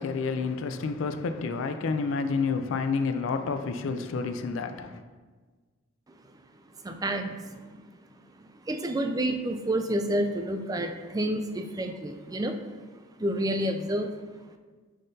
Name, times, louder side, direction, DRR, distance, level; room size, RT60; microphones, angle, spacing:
voice 1, 0.0-5.0, left 4 dB, 65° left, 0.4 m, -29 dB
voice 2, 6.8-7.8 8.7-12.6 13.2-14.1, right 1 dB, 15° right, 0.3 m, -29 dB
10.0 x 3.7 x 2.7 m
head